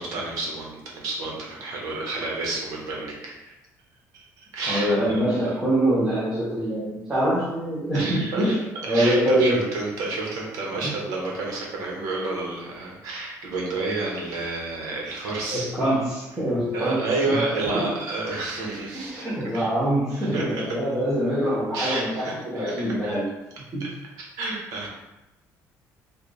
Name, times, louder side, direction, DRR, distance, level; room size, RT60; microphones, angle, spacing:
voice 1, 0.0-3.5 4.1-5.2 7.9-15.7 16.7-19.7 20.1-20.8 21.7-23.2 23.8-23.9 24.2-24.9, right 3 dB, 70° right, -2 dB, 1.1 m, -30 dB
voice 2, 4.7-8.6 8.8-9.6 15.5-17.4 17.7-17.9 18.9-23.2 23.7-23.8, right 1 dB, 10° right, -12 dB, 0.9 m, -24 dB
4.3 x 2.4 x 3.3 m, 0.99 s
cardioid pair, 180°, 6 cm